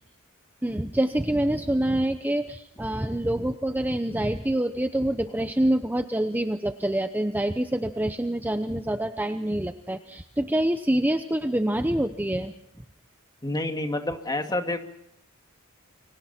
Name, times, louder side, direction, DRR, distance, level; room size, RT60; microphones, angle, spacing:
voice 1, 0.6-12.5, right 1 dB, 10° right, 8 dB, 0.8 m, -26 dB
voice 2, 13.4-14.8, left 2 dB, 20° left, 5 dB, 2.3 m, -28 dB
30.0 x 24.0 x 4.4 m, 0.73 s
head